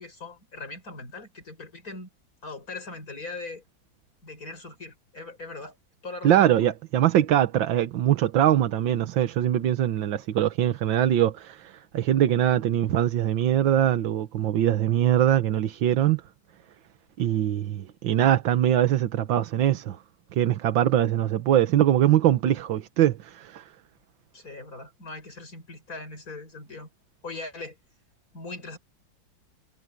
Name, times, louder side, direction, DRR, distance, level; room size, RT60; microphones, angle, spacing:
voice 1, 0.0-2.1 2.4-3.6 4.2-5.7 6.0-6.4 24.3-26.9 27.2-27.8 28.3-28.8, left 3 dB, 45° left, 6.6 m, -40 dB
voice 2, 6.2-16.2 17.2-20.0 20.3-23.6, right 11 dB, 85° right, 1.8 m, -22 dB
omnidirectional pair, 2.0 m